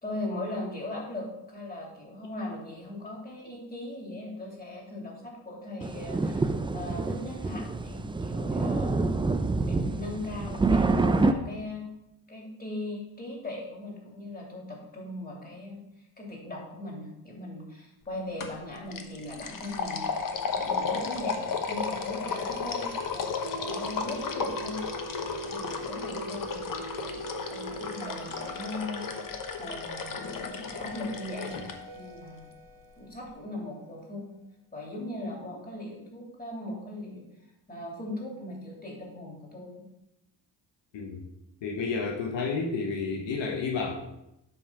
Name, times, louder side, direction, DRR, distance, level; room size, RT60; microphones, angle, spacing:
voice 1, 0.0-9.0 9.6-11.9 12.3-15.8 16.2-22.9 23.1-24.8 25.4-31.6 31.9-32.5 33.0-34.3 34.7-37.2 37.7-39.8, left 1 dB, 20° left, -2 dB, 2.9 m, -39 dB
sound 1, 5.8-11.3, right 3 dB, 10° right, 0.4 m, -27 dB
sound 2, 18.4-18.6 18.9-31.7, left 5 dB, 45° left, 1.0 m, -34 dB
sound 3, 23.4-33.8, right 2 dB, 70° right, 1.0 m, -42 dB
voice 2, 41.6-43.9, left 4 dB, 75° left, 1 dB, 1.1 m, -30 dB
7.7 x 3.6 x 5.7 m, 0.87 s
cardioid pair, 75°, 44 cm